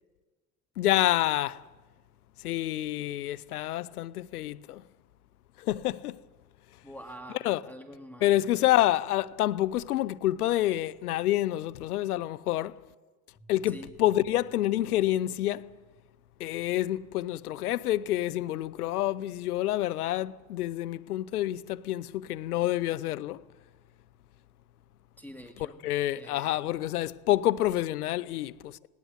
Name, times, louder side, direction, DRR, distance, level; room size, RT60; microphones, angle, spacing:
voice 1, 0.8-1.6 2.4-4.8 5.6-6.2 7.4-7.6 8.2-12.8 13.5-15.7 16.4-23.4 25.6-28.8, left 14 dB, 90° left, 0.6 m, -28 dB
voice 2, 6.8-8.4 13.7-13.9 25.2-25.8 26.1-26.6, equal, 5° left, 2.3 m, -46 dB
sound 1, 13.4-15.9, left 2 dB, 20° left, 3.3 m, -59 dB
18.0 x 18.0 x 8.1 m
hypercardioid pair, 65°, 43 cm